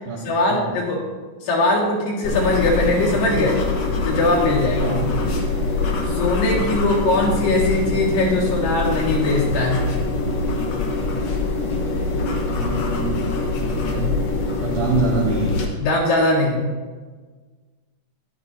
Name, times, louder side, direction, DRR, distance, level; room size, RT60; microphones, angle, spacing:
voice 1, 0.3-1.0 1.4-3.6 4.0-5.0 6.1-9.9 15.8-16.7, left 2 dB, 85° left, -4 dB, 3.7 m, -20 dB
sound 1, 2.2-15.7, left 3 dB, 60° left, 1.9 m, -23 dB
voice 2, 4.8-5.2 12.5-13.1 13.6-14.2 14.6-15.5, right 3 dB, 65° right, -7 dB, 3.5 m, -25 dB
11.5 x 10.5 x 2.7 m, 1.4 s
omnidirectional pair, 3.8 m